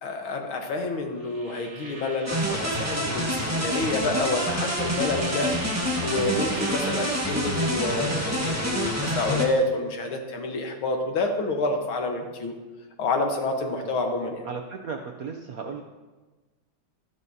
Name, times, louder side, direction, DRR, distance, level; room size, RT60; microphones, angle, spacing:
voice 1, 0.0-5.5 6.0-12.5 13.0-14.5, left 2 dB, 80° left, 3 dB, 2.1 m, -28 dB
sound 1, 1.2-8.0, right 3 dB, 35° right, 2.1 m, -43 dB
sound 2, 2.3-9.4, equal, 10° right, 1.0 m, -27 dB
voice 2, 14.4-15.8, right 5 dB, 70° right, 4 dB, 0.8 m, -35 dB
13.5 x 12.0 x 2.8 m, 1.2 s
omnidirectional pair, 2.2 m